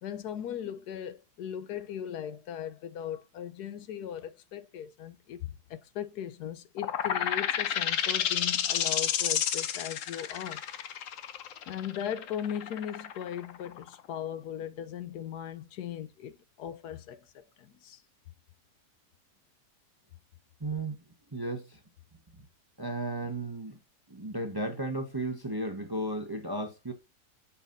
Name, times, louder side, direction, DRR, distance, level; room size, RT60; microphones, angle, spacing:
voice 1, 0.0-10.6 11.7-18.0, left 9 dB, 80° left, 1.2 m, -38 dB
sound 1, 6.8-14.1, left 9 dB, 60° left, 1.0 m, -30 dB
voice 2, 20.6-21.0 21.3-21.8 22.8-23.8 24.1-26.9, right 1 dB, 20° right, 0.8 m, -34 dB
9.0 x 7.0 x 2.6 m
omnidirectional pair, 1.7 m